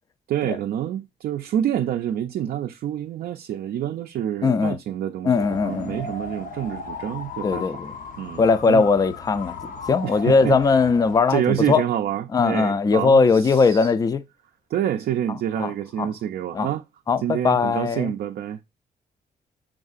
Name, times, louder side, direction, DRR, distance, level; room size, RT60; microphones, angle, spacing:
voice 1, 0.3-7.7 8.2-8.8 10.0-10.6 11.3-13.9 14.7-16.8 17.2-18.6, right 10 dB, 70° right, 0.4 m, -27 dB
voice 2, 4.4-4.8 5.2-6.1 7.4-7.9 8.4-9.6 9.9-11.8 12.3-14.2 15.6-15.7 16.0-16.1 16.5-16.7 17.1-18.1, left 4 dB, 25° left, 0.3 m, -20 dB
sound 1, 5.3-11.2, left 4 dB, 60° left, 0.7 m, -36 dB
5.5 x 3.6 x 2.4 m
cardioid pair, 100°, 16 cm